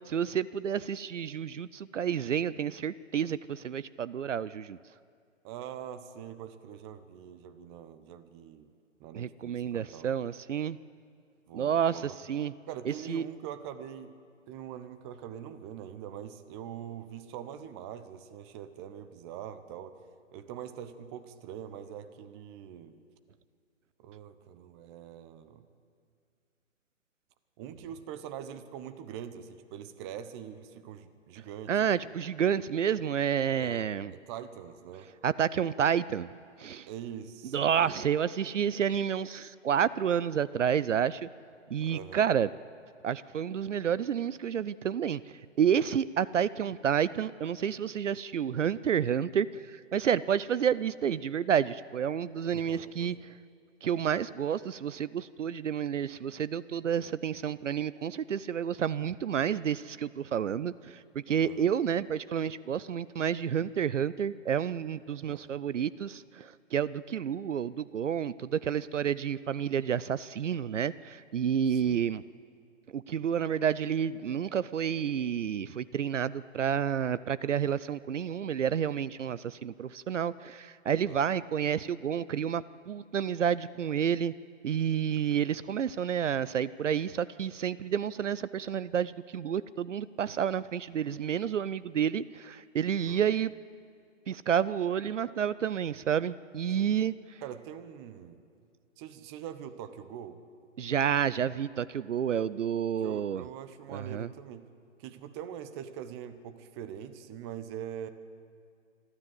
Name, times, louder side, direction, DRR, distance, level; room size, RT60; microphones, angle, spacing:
voice 1, 0.1-4.8 9.1-10.8 11.5-12.5 12.9-13.2 31.7-34.1 35.2-36.3 36.6-36.9 37.5-41.3 41.7-42.5 43.0-45.2 45.6-53.2 53.8-72.2 72.9-84.3 84.6-93.5 94.3-97.1 100.8-103.4 103.9-104.3, right 8 dB, 70° right, 17 dB, 0.6 m, -30 dB
voice 2, 5.4-8.7 9.0-10.2 11.5-12.2 12.7-14.1 14.5-20.0 20.3-23.0 24.0-25.7 27.6-32.1 33.5-35.1 36.9-38.0 41.8-42.3 52.5-53.2 61.4-61.8 65.3-65.6 71.7-72.1 81.1-81.2 93.1-93.3 96.8-97.0 97.4-98.4 99.0-100.4 103.0-104.7 105.0-108.1, right 9 dB, 20° right, 11 dB, 0.9 m, -43 dB
26.0 x 13.0 x 7.9 m, 2.3 s
figure-of-eight pair, 130°, 39 cm